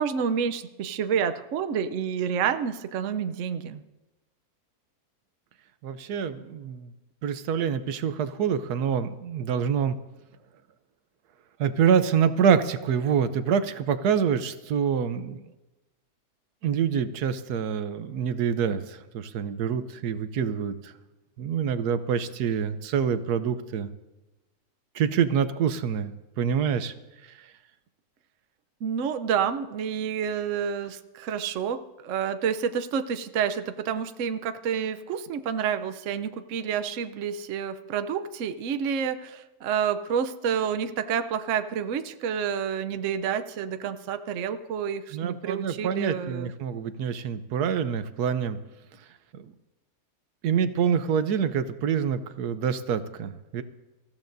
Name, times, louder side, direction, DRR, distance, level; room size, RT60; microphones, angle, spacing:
voice 1, 0.0-3.8 28.8-46.5, right 7 dB, 60° right, 10 dB, 1.0 m, -29 dB
voice 2, 5.8-6.9 7.2-10.0 11.6-15.4 16.6-20.9 21.4-23.9 24.9-26.9 45.1-48.6 50.4-53.6, right 7 dB, 85° right, 11 dB, 1.3 m, -26 dB
26.5 x 14.5 x 2.6 m, 1.1 s
omnidirectional pair, 1.6 m